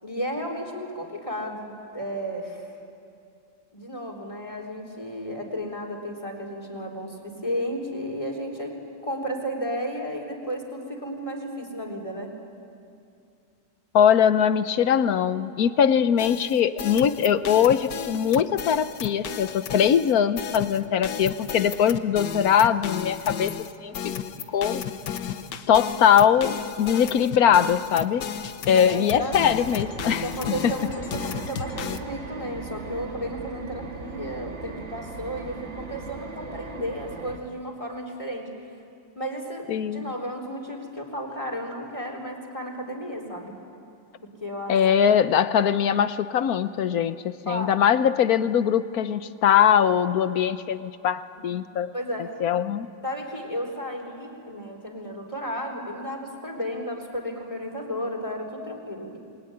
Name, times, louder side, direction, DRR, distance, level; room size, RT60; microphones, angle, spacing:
voice 1, 0.0-2.8 3.7-12.3 28.9-29.4 30.1-38.7 39.2-43.5 44.4-44.8 47.5-47.8 51.4-51.5 51.9-52.3 53.0-59.2, equal, 15° left, 1 dB, 3.6 m, -33 dB
voice 2, 13.9-23.5 23.8-23.9 24.5-24.8 25.7-28.3 28.7-30.2 30.6-30.7 39.7-40.1 44.7-51.9 52.4-52.9, left 8 dB, 60° left, 13 dB, 1.2 m, -21 dB
sound 1, 16.2-32.0, left 8 dB, 75° left, 1.6 m, -34 dB
sound 2, 29.3-37.4, right 4 dB, 40° right, 1.8 m, -39 dB
27.5 x 21.5 x 9.6 m, 2.5 s
omnidirectional pair, 1.9 m